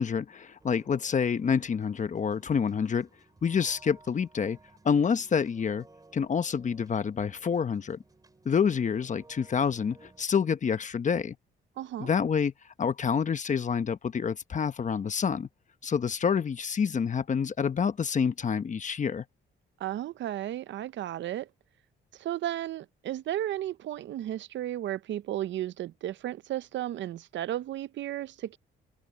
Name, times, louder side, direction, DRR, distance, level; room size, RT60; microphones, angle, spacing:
voice 1, 0.0-3.1 3.4-4.6 4.8-5.9 6.1-8.0 8.4-11.3 12.0-12.5 12.8-15.5 15.8-19.2, left 6 dB, 40° left, 1.0 m, -27 dB
sound 1, 0.6-10.2, right 3 dB, 20° right, 3.5 m, -58 dB
voice 2, 11.8-12.1 19.8-21.5 22.2-28.6, right 12 dB, 65° right, 0.6 m, -34 dB
cardioid pair, 90°, 20 cm